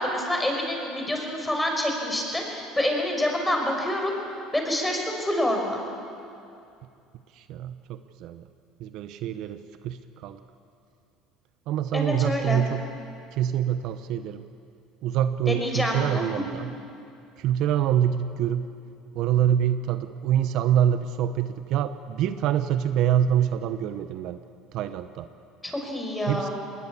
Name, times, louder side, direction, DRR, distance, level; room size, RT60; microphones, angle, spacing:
voice 1, 0.0-4.1 4.5-5.8 11.9-12.6 15.5-16.3 25.6-26.5, left 1 dB, 10° left, 2 dB, 5.6 m, -27 dB
voice 2, 7.4-8.5 8.8-10.4 11.7-12.8 13.3-14.4 15.0-16.7 17.4-18.7 19.1-24.4 24.7-25.3 26.3-26.5, right 10 dB, 65° right, 11 dB, 0.8 m, -25 dB
20.5 x 19.5 x 8.5 m, 2.5 s
supercardioid pair, 90°, 0 cm